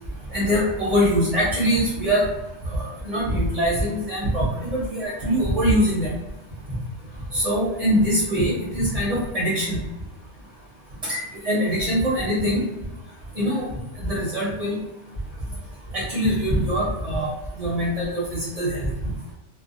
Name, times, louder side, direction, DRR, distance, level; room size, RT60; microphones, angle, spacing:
voice 1, 0.3-2.2 2.7-6.1 7.3-9.8 11.1-12.6 13.4-13.6 14.0-14.8 15.9-17.3 17.6-18.2 18.5-18.9, equal, 40° right, -7 dB, 0.6 m, -23 dB
2.5 x 2.0 x 2.5 m, 0.97 s
omnidirectional pair, 1.3 m